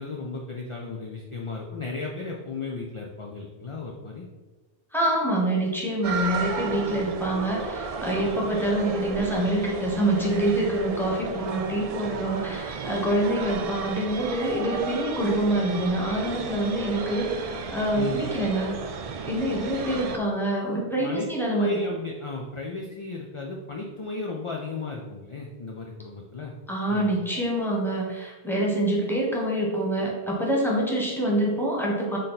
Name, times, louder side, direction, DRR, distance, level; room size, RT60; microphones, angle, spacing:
voice 1, 0.0-4.2 18.0-18.2 21.0-26.5 26.9-27.2, left 3 dB, 40° left, 0 dB, 0.5 m, -35 dB
voice 2, 4.9-18.8 19.3-21.8 26.7-32.2, right 1 dB, ahead, -3 dB, 1.3 m, -26 dB
sound 1, 6.0-20.2, right 5 dB, 55° right, 0.4 m, -33 dB
6.5 x 3.8 x 4.1 m, 1.2 s
omnidirectional pair, 1.1 m